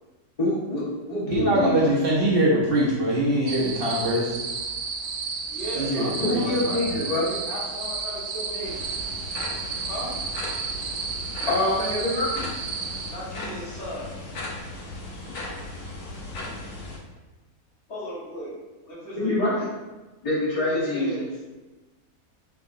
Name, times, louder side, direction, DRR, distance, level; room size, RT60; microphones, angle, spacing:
voice 1, 0.4-1.8 6.2-7.4 11.5-12.5 19.2-19.7 20.2-21.1, left 1 dB, 25° left, -8 dB, 1.2 m, -25 dB
voice 2, 1.3-4.3 5.8-6.5 6.7-6.9, right 1 dB, 50° right, -5 dB, 0.7 m, -23 dB
sound 1, 3.5-13.1, right 4 dB, 90° right, 1.1 m, -32 dB
voice 3, 5.5-8.8 9.9-10.1 13.1-14.1 17.9-18.5 18.8-19.5 20.7-21.4, equal, 50° left, -9 dB, 1.7 m, -36 dB
sound 2, 8.6-17.0, left 2 dB, 85° left, 1.2 m, -37 dB
4.6 x 2.9 x 2.5 m, 1.2 s
omnidirectional pair, 1.6 m